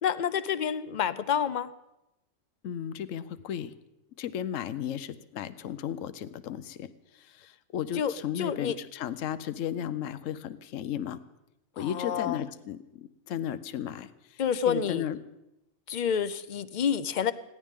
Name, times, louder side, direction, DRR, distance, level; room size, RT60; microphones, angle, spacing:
voice 1, 0.0-1.7 7.9-8.7 11.8-12.4 14.4-15.1 15.9-17.3, left 8 dB, 45° left, 14 dB, 0.6 m, -28 dB
voice 2, 2.6-3.7 4.2-11.2 11.8-15.2, left 10 dB, 75° left, 13 dB, 1.1 m, -35 dB
21.5 x 16.0 x 3.7 m, 0.90 s
omnidirectional pair, 1.4 m